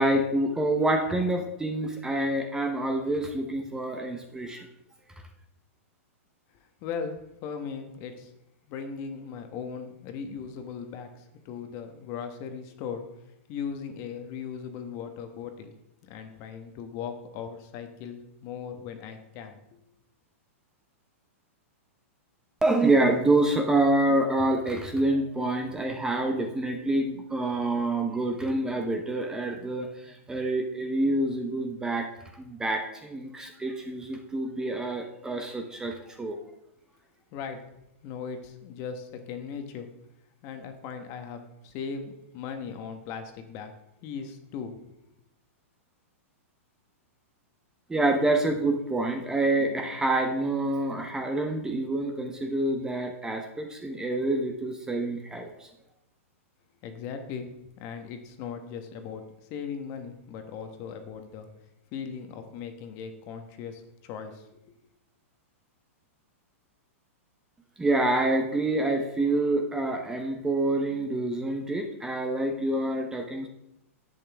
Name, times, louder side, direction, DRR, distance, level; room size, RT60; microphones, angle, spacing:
voice 1, 0.0-4.7 22.6-32.1 32.3-36.4 47.9-55.7 67.8-73.5, right 2 dB, 10° right, 4 dB, 0.9 m, -27 dB
voice 2, 6.8-7.2 7.4-8.3 8.7-13.0 13.5-15.7 16.0-19.6 37.3-37.6 38.0-39.9 40.4-43.7 44.0-44.8 56.8-57.5 57.8-59.2 59.5-61.5 61.9-64.5, left 6 dB, 40° left, 7 dB, 1.3 m, -38 dB
10.5 x 8.5 x 3.5 m, 0.84 s
hypercardioid pair, 140°, 8 cm